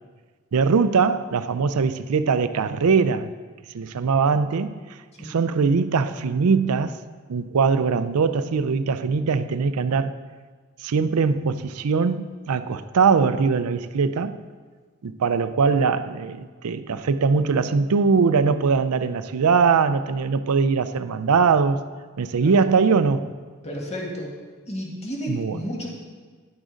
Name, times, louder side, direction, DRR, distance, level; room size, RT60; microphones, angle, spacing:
voice 1, 0.5-3.3 3.7-4.8 5.2-7.0 7.3-10.1 10.8-14.4 15.0-21.8 22.2-23.3 25.3-25.6, right 5 dB, 80° right, 13 dB, 0.5 m, -21 dB
voice 2, 23.6-24.3 24.7-25.9, equal, 30° left, -2 dB, 1.6 m, -32 dB
10.5 x 6.3 x 5.0 m, 1.5 s
head